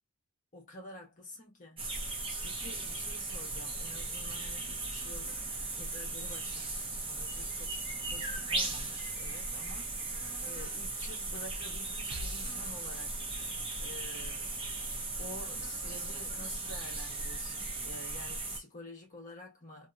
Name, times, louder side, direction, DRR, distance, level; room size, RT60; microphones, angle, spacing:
voice 1, 0.5-7.7 8.0-9.9 10.4-13.2 13.4-14.5 14.8-14.9 15.2-19.9, left 2 dB, 35° left, 1.3 m, -49 dB
barham rainforest atmos, 1.8-18.6, right 2 dB, 25° right, 0.9 m, -37 dB
sound 1, 12.1-13.4, right 1 dB, 65° right, 0.8 m, -45 dB
3.0 x 2.8 x 2.4 m
head